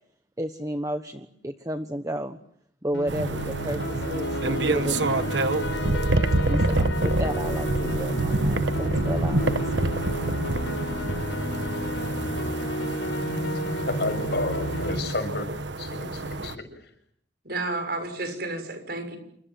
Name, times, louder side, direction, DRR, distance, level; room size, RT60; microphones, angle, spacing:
voice 1, 0.4-2.4 2.8-5.4 6.5-9.9, equal, 20° right, 7 dB, 1.2 m, -32 dB
sound 1, 2.9-14.9, equal, 85° left, 5.9 m, -31 dB
sound 2, 3.1-16.5, right 2 dB, 75° right, 1.3 m, -27 dB
voice 2, 13.7-16.9, left 2 dB, 60° left, 8 dB, 6.8 m, -32 dB
voice 3, 17.4-19.2, right 2 dB, 55° right, 7 dB, 6.9 m, -31 dB
29.0 x 25.5 x 7.7 m, 0.71 s
head